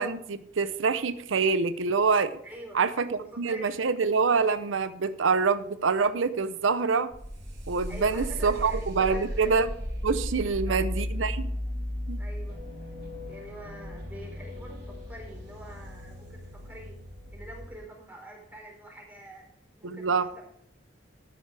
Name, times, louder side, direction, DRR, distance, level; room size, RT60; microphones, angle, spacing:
voice 1, 0.0-2.4 2.7-7.1 7.7-9.7 10.0-11.5 12.1-12.2 19.8-20.3, right 5 dB, 85° right, 12 dB, 0.7 m, -26 dB
voice 2, 2.4-3.8 7.9-9.6 10.4-10.8 12.2-12.9 13.2-16.9 17.3-19.5 19.7-20.5, right 1 dB, 10° right, -1 dB, 4.1 m, -45 dB
sound 1, 7.1-17.8, equal, 60° right, 3.5 m, -36 dB
12.5 x 9.8 x 3.4 m, 0.71 s
head